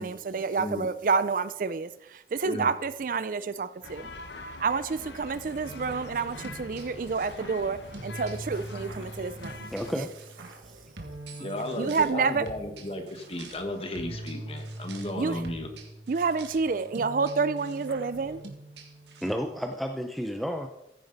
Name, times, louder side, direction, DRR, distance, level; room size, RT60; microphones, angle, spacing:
voice 1, 0.0-1.9 2.3-4.1 4.6-9.7 11.8-12.5 12.9-13.1 15.2-15.4 16.1-18.4, right 4 dB, 50° right, 0.4 m, -29 dB
voice 2, 0.6-0.9 2.4-2.7 11.4-15.7, left 1 dB, 35° left, 1.4 m, -34 dB
sound 1, 3.8-9.9, left 2 dB, 85° left, 1.2 m, -44 dB
sound 2, 5.6-19.3, right 2 dB, 85° right, 1.9 m, -43 dB
voice 3, 9.7-10.1 10.7-10.8 19.2-20.7, equal, ahead, 0.6 m, -31 dB
14.5 x 9.2 x 4.0 m
head